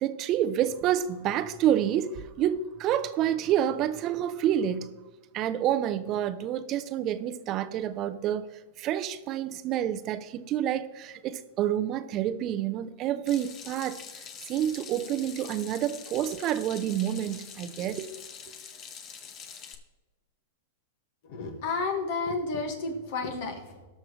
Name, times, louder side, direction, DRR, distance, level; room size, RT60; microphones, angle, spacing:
voice 1, 0.0-4.9 5.3-8.5 8.8-14.0 14.4-18.1, right 11 dB, 35° right, 0.7 m, -28 dB
Water tap faucet / Sink (filling or washing), 13.3-19.7, left 7 dB, 30° left, 1.1 m, -45 dB
voice 2, 21.2-23.9, left 3 dB, 60° left, 1.9 m, -31 dB
18.5 x 6.4 x 3.3 m
hypercardioid pair, 125°, 0 cm